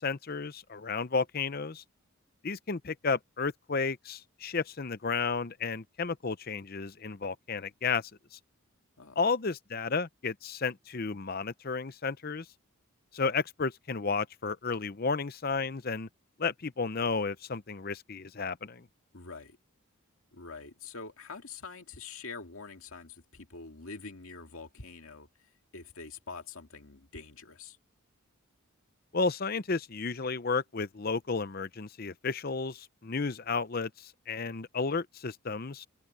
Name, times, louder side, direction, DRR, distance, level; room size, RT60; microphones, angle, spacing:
voice 1, 0.0-1.8 2.4-8.0 8.3-8.4 9.2-12.4 13.1-16.1 16.4-18.9 29.1-35.9, left 4 dB, 45° left, 0.7 m, -32 dB
voice 2, 19.1-19.6 20.3-25.3 25.7-27.8, left 4 dB, 80° left, 2.3 m, -45 dB
head